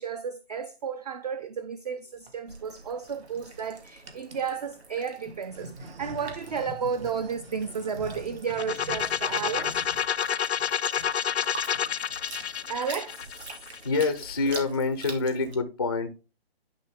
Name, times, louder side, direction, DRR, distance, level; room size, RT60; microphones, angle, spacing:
voice 1, 0.0-9.8 12.7-13.5, right 6 dB, 40° right, 0.5 m, -33 dB
sound 1, 1.9-2.3 3.0-3.6 4.0-4.5 5.2-10.7 10.9-11.1 11.4-11.5 11.7-12.0 12.3-12.8, right 1 dB, 65° right, 1.6 m, -45 dB
sound 2, 2.5-15.6, right 3 dB, 90° right, 2.5 m, -46 dB
sound 3, 8.5-14.3, left 8 dB, 90° left, 0.6 m, -29 dB
voice 2, 13.8-16.1, left 3 dB, 25° left, 0.4 m, -26 dB
10.5 x 3.8 x 3.5 m
hypercardioid pair, 155°, 32 cm